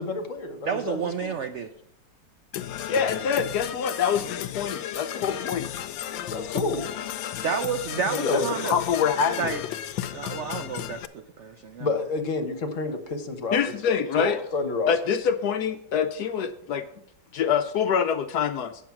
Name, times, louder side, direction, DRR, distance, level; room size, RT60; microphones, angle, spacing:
voice 1, 0.0-1.0 6.1-6.8 8.1-8.5 11.8-13.6 13.9-14.9, left 3 dB, 50° left, 6 dB, 1.3 m, -29 dB
voice 2, 0.6-1.7 7.4-8.8 9.4-9.6 10.1-11.9, right 6 dB, 85° right, 7 dB, 0.6 m, -30 dB
Percussion / Brass instrument, 2.5-11.1, left 11 dB, 90° left, 1.3 m, -34 dB
voice 3, 2.9-5.7 8.3-9.5 10.0-10.1 13.5-14.4 14.9-16.8 17.3-18.7, left 7 dB, 70° left, 9 dB, 1.0 m, -25 dB
9.2 x 7.0 x 5.8 m, 0.72 s
omnidirectional pair, 2.0 m